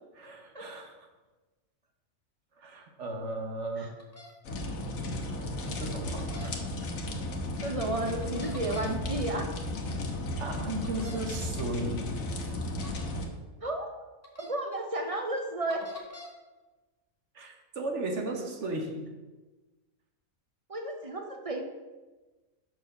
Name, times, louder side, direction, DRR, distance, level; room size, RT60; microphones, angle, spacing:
voice 1, 0.2-1.1 2.6-4.0 5.6-6.5 9.9-10.1 10.4-12.1 12.4-12.5 17.3-19.1, right 2 dB, 60° right, 3 dB, 1.2 m, -36 dB
sound 1, 4.0-4.3 6.2-6.5 8.2-9.0 10.8-11.3 12.8-13.1 14.2-14.5 15.7-16.3, left 1 dB, 10° left, 1.1 m, -46 dB
sound 2, 4.4-13.3, left 1 dB, 75° left, 1.4 m, -34 dB
voice 2, 7.6-9.5 13.6-13.9 14.4-15.9 20.7-21.6, right 1 dB, 35° right, 4 dB, 0.6 m, -32 dB
6.0 x 4.7 x 6.6 m, 1.2 s
omnidirectional pair, 1.5 m